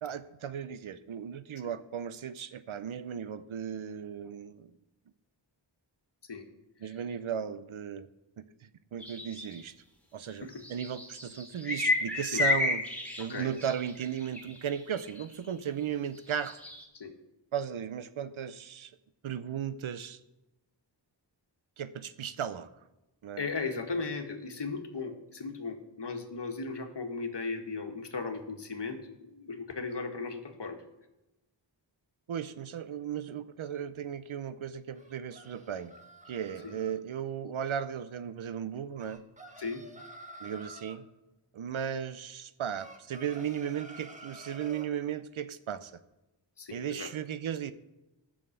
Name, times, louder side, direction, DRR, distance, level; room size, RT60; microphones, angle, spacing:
voice 1, 0.0-4.7 6.8-8.1 8.4-9.7 10.1-12.8 13.2-16.6 17.5-18.9 19.2-20.2 21.8-22.7 23.2-23.5 32.3-35.9 36.3-39.2 40.4-41.1 41.5-46.0 46.7-47.7, right 8 dB, 90° right, 14 dB, 0.7 m, -36 dB
sound 1, 9.0-9.6 10.5-15.5 16.2-16.8, left 3 dB, 5° left, 2.6 m, -32 dB
voice 2, 23.4-30.8 36.6-36.7 39.6-39.8 46.6-47.1, left 4 dB, 60° left, 5 dB, 1.6 m, -37 dB
sound 2, 35.0-37.0 39.0-41.0 42.8-44.9, right 1 dB, 15° right, 1.6 m, -49 dB
11.0 x 6.5 x 8.0 m, 0.98 s
cardioid pair, 50°, 47 cm